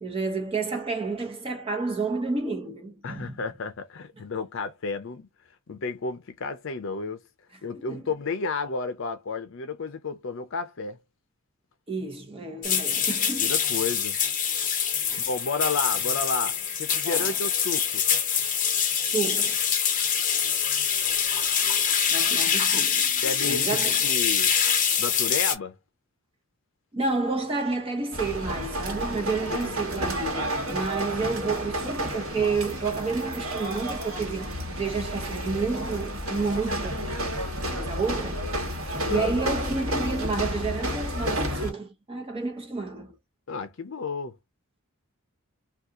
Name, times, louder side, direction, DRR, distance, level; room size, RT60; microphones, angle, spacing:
voice 1, 0.0-3.4 7.7-8.0 11.9-13.5 15.1-15.2 17.0-17.4 19.0-19.6 22.1-23.1 23.4-24.1 26.9-36.9 37.6-38.4 39.1-43.2, right 4 dB, 25° right, 0.8 m, -30 dB
voice 2, 3.0-5.3 5.7-7.2 7.6-11.0 13.4-14.2 15.3-18.0 23.2-24.6 25.0-25.8 29.5-29.8 39.1-39.4 43.5-44.4, left 4 dB, 60° left, 0.5 m, -31 dB
sound 1, 12.6-25.5, left 7 dB, 40° left, 0.9 m, -25 dB
sound 2, 28.1-41.7, equal, 80° right, 1.3 m, -31 dB
2.7 x 2.3 x 3.6 m
head